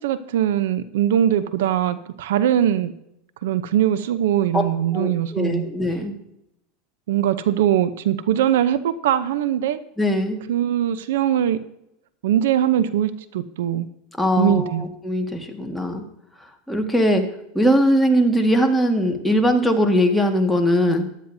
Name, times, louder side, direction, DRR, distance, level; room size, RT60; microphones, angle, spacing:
voice 1, 0.0-2.9 3.4-5.7 7.1-9.8 10.5-11.6 12.2-13.9 14.4-14.9, right 11 dB, 80° right, 14 dB, 0.6 m, -21 dB
voice 2, 4.9-6.2 10.0-10.4 14.2-14.7 15.0-16.0 16.7-17.2 17.5-21.0, equal, 5° left, 3 dB, 1.7 m, -20 dB
15.5 x 11.0 x 2.7 m, 0.82 s
supercardioid pair, 115°, 0 cm